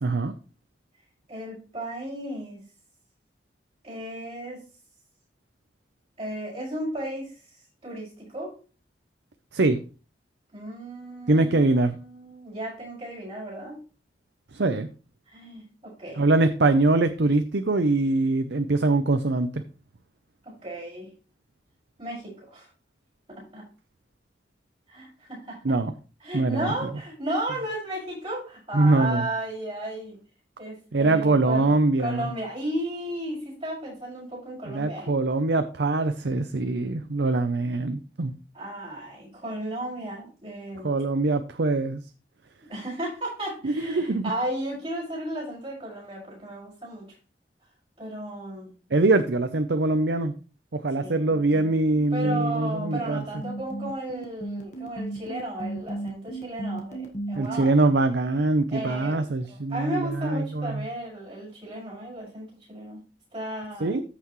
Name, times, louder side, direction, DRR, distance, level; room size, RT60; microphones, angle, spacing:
voice 1, 0.0-0.3 9.5-9.8 11.3-11.9 14.5-14.9 16.2-19.6 25.6-25.9 26.3-26.7 28.7-29.2 30.9-32.3 34.7-38.3 40.8-42.0 43.6-44.2 48.9-50.3 50.7-53.2 57.4-60.8 63.8-64.0, right 2 dB, 75° right, 9 dB, 0.7 m, -23 dB
voice 2, 1.3-2.6 3.8-4.6 6.2-7.3 7.8-8.5 10.5-13.8 15.3-16.3 20.6-21.1 22.0-22.7 23.3-23.7 24.9-25.6 26.2-30.2 30.6-31.7 32.0-35.2 38.5-40.9 42.7-47.1 48.0-49.0 51.0-51.2 52.1-57.7 58.7-59.2 59.5-63.0 63.3-64.0, right 1 dB, 35° right, -6 dB, 5.6 m, -34 dB
sound 1, 52.5-57.6, right 2 dB, 40° left, 1.5 m, -35 dB
14.0 x 5.9 x 3.1 m, 0.35 s
head